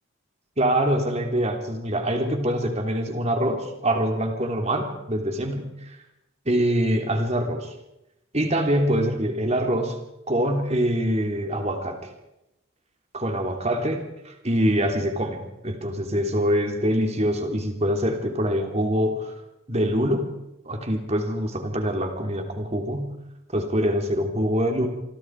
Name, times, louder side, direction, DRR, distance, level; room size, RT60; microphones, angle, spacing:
voice 1, 0.6-5.7 6.5-7.7 8.3-10.0 10.3-12.0 13.1-19.3 19.7-20.3 20.7-23.1 23.5-24.9, equal, 30° right, 4 dB, 3.5 m, -24 dB
27.5 x 23.5 x 4.9 m, 0.90 s
head